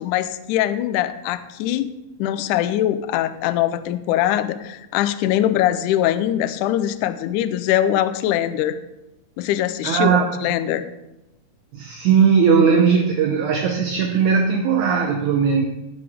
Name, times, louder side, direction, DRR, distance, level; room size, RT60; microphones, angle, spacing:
voice 1, 0.0-1.9 2.2-8.8 9.4-10.9, left 12 dB, 85° left, 12 dB, 1.8 m, -22 dB
voice 2, 9.8-10.4 11.7-15.7, right 6 dB, 75° right, 2 dB, 1.9 m, -18 dB
15.5 x 6.8 x 3.6 m, 0.95 s
omnidirectional pair, 4.2 m